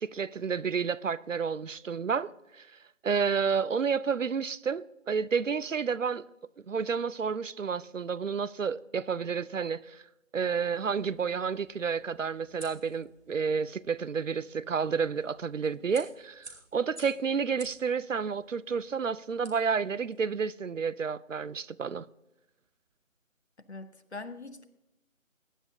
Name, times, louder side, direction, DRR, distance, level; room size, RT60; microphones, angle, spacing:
voice 1, 0.0-2.7 3.0-6.3 6.7-10.0 10.3-22.1, right 6 dB, 70° right, 0.5 m, -30 dB
sound 1, 10.3-20.3, right 2 dB, 50° right, 2.6 m, -54 dB
voice 2, 23.7-24.6, left 3 dB, 55° left, 0.9 m, -42 dB
22.0 x 10.0 x 2.7 m
figure-of-eight pair, 165°, 41 cm